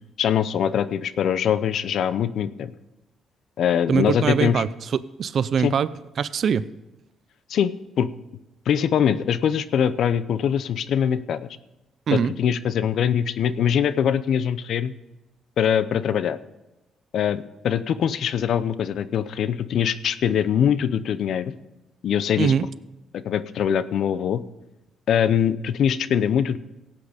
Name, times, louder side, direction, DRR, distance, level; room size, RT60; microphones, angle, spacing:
voice 1, 0.2-2.7 3.6-4.6 5.6-5.7 7.5-7.7 8.0-8.1 8.7-11.5 12.1-14.9 15.6-16.4 17.1-21.5 22.0-22.5 23.1-24.4 25.1-26.6, left 8 dB, 70° left, 15 dB, 0.6 m, -22 dB
voice 2, 3.9-5.9 6.2-6.7 12.1-12.3 22.4-22.6, right 7 dB, 55° right, 17 dB, 0.5 m, -22 dB
16.5 x 8.6 x 5.1 m, 1.0 s
cardioid pair, 90°, 0 cm